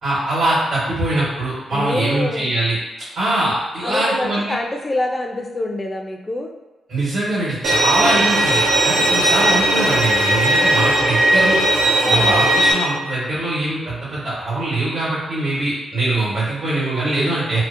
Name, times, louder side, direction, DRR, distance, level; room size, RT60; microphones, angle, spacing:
voice 1, 0.0-2.8 3.1-4.5 6.9-11.6 12.1-17.6, right 2 dB, 65° right, -9 dB, 1.1 m, -22 dB
voice 2, 1.7-2.5 3.4-3.5 3.8-6.5 8.0-8.3 12.0-12.3 17.2-17.3, left 1 dB, 20° left, 2 dB, 0.3 m, -26 dB
Bowed string instrument, 7.6-12.7, right 1 dB, 80° right, 0.5 m, -17 dB
2.5 x 2.0 x 2.5 m, 1.1 s
cardioid pair, 115°, 0 cm